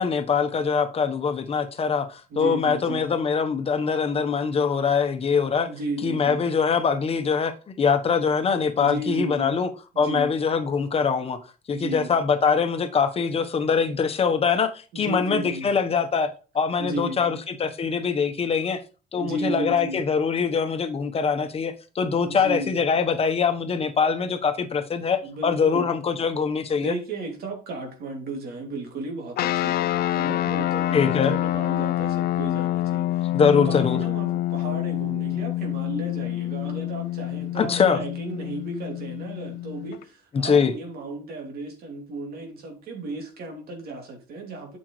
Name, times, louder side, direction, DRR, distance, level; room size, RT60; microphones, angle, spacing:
voice 1, 0.0-5.7 6.0-9.7 10.0-11.4 11.7-18.8 19.1-26.9 30.9-31.3 33.3-34.0 37.6-38.0 40.3-40.7, left 6 dB, 35° left, 1.1 m, -23 dB
voice 2, 2.3-3.1 5.7-6.4 8.8-9.6 9.9-10.4 11.7-12.2 14.9-15.8 16.8-17.4 19.2-20.1 22.3-22.9 25.2-25.9 26.8-44.8, right 2 dB, 65° right, 2.7 m, -34 dB
sound 1, 29.4-40.0, left 14 dB, 65° left, 0.5 m, -27 dB
8.6 x 6.5 x 3.2 m
cardioid pair, 110°, 17 cm